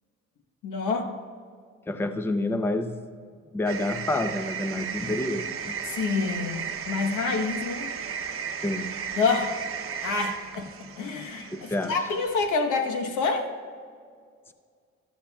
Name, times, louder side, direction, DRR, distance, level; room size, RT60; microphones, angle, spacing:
voice 1, 0.6-1.1 5.8-7.9 9.1-9.6 10.0-13.5, left 4 dB, 80° left, 4 dB, 1.1 m, -27 dB
voice 2, 1.9-3.0 3.5-5.8 8.6-8.9 11.5-12.0, left 2 dB, 10° left, 9 dB, 0.6 m, -28 dB
sound 1, 3.7-12.5, right 7 dB, 45° right, 0.8 m, -35 dB
14.0 x 12.5 x 2.3 m, 2.1 s
cardioid pair, 90°, 30 cm